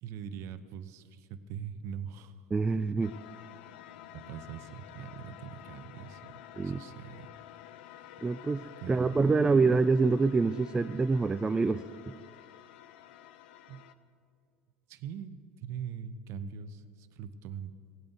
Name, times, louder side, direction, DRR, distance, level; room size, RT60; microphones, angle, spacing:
voice 1, 0.0-2.9 4.0-7.3 8.0-8.1 8.8-9.4 13.7-13.8 14.9-17.7, right 7 dB, 45° right, 13 dB, 0.8 m, -42 dB
voice 2, 2.5-3.2 6.6-6.8 8.2-12.1, right 4 dB, 10° right, 12 dB, 0.3 m, -26 dB
sound 1, 3.0-13.9, left 12 dB, 55° left, 0.7 m, -51 dB
17.0 x 8.7 x 7.9 m, 2.3 s
figure-of-eight pair, 75°, 7 cm